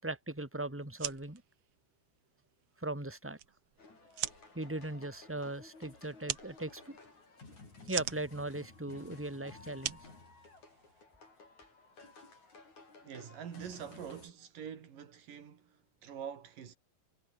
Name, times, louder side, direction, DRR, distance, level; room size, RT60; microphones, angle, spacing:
voice 1, 0.0-1.4 2.8-3.4 4.5-6.9 7.9-10.0, right 2 dB, 5° right, 4.0 m, -39 dB
sound 1, 0.8-11.0, right 11 dB, 60° right, 1.7 m, -44 dB
sound 2, 3.8-14.3, left 3 dB, 60° left, 8.8 m, -55 dB
voice 2, 13.0-16.8, right 8 dB, 85° right, 4.3 m, -45 dB
omnidirectional pair, 3.7 m